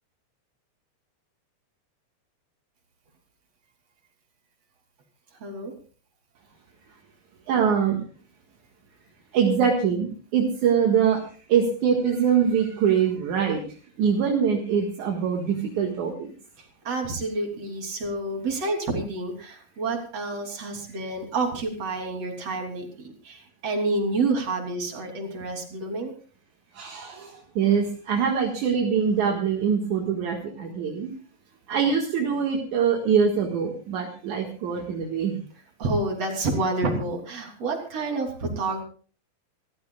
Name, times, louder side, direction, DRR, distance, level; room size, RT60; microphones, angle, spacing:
voice 1, 5.4-5.7 16.6-26.1 35.8-38.8, right 2 dB, 40° right, 2 dB, 3.8 m, -29 dB
voice 2, 7.5-8.0 9.3-13.6 14.0-16.3 26.7-31.1 31.7-35.4, right 7 dB, 55° right, 1 dB, 2.5 m, -23 dB
27.5 x 14.0 x 2.4 m, 0.40 s
omnidirectional pair, 5.2 m